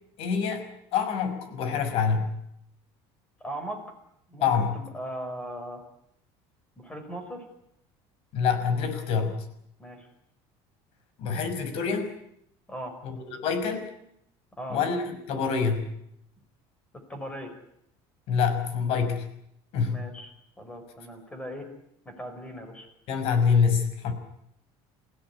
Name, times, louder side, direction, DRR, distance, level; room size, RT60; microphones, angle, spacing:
voice 1, 0.2-0.6 0.9-2.3 4.4-4.8 8.3-9.5 11.2-12.1 13.0-13.9 14.7-15.9 18.3-19.3 19.7-20.0 23.1-24.1, left 6 dB, 55° left, 8 dB, 5.8 m, -26 dB
voice 2, 3.4-3.8 4.3-4.5 4.7-5.8 6.8-7.5 9.8-10.1 12.7-12.9 14.6-14.8 16.9-17.5 19.9-20.3 20.6-21.7 22.0-22.9, right 1 dB, 10° left, 6 dB, 5.6 m, -38 dB
28.5 x 16.5 x 9.9 m, 0.76 s
cardioid pair, 170°, 12 cm